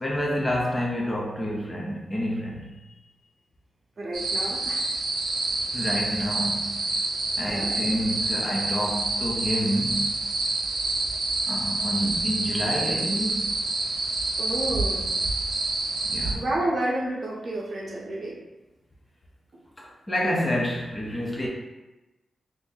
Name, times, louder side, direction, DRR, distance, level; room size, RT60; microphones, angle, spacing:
voice 1, 0.0-2.7 5.7-6.8 7.4-10.3 11.5-13.5 16.0-16.4 19.8-21.5, equal, 20° left, -3 dB, 0.5 m, -28 dB
voice 2, 4.0-4.8 7.4-7.8 14.4-15.0 16.3-18.4, right 1 dB, 40° right, -3 dB, 0.7 m, -30 dB
sound 1, 4.1-16.3, right 2 dB, 85° right, 0.6 m, -27 dB
2.6 x 2.5 x 3.8 m, 1.1 s
wide cardioid pair, 165°, 0 cm